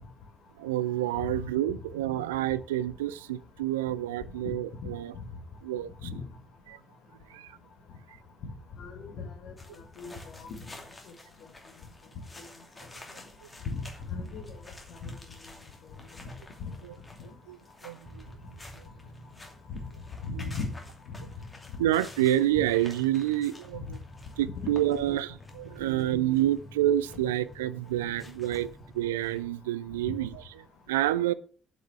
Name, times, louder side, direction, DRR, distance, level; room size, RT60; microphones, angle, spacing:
voice 1, 0.6-5.1 5.6-6.1 6.7-6.8 7.3-7.6 16.8-16.9 17.5-17.6 17.8-18.9 20.3-20.4 21.8-24.0 24.4-28.7 28.9-31.3, right 13 dB, 75° right, 0.3 m, -28 dB
voice 2, 8.8-9.5 10.0-10.5 13.7-13.8 14.1-14.6 15.0-15.1 19.7-19.8 20.2-20.7 21.1-21.2 24.4-24.7, left 4 dB, 60° left, 1.9 m, -36 dB
sound 1, 9.6-29.4, left 2 dB, 20° left, 2.7 m, -50 dB
8.3 x 6.2 x 5.7 m
figure-of-eight pair, 40°, 0 cm